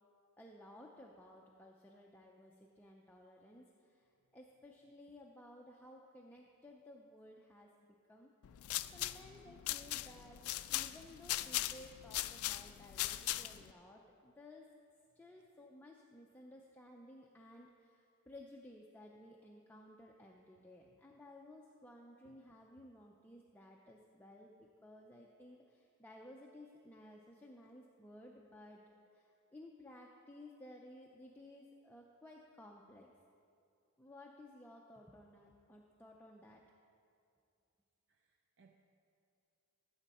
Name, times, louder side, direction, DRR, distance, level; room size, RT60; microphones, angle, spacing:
voice 1, 0.4-4.1 4.3-7.7 8.1-8.6 8.9-14.7 15.2-28.8 29.1-33.1 34.0-36.6, left 1 dB, 10° left, -1 dB, 0.5 m, -57 dB
sound 1, 8.4-13.7, left 15 dB, 70° left, 0.3 m, -39 dB
voice 2, 38.1-38.8, right 5 dB, 55° right, 4 dB, 0.5 m, -69 dB
14.5 x 7.2 x 4.2 m, 2.5 s
head